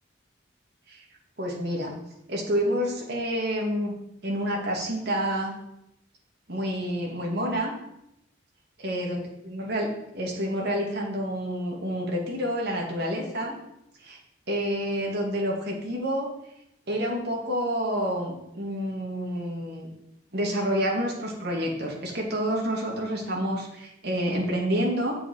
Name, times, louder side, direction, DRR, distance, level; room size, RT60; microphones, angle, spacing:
voice 1, 1.4-1.9 2.3-3.9 4.2-5.6 6.5-7.7 8.8-9.9 10.1-13.5 14.0-14.2 14.5-16.3 16.9-19.9 20.3-25.2, equal, 60° right, -1 dB, 2.4 m, -28 dB
8.1 x 7.6 x 4.7 m, 0.81 s
head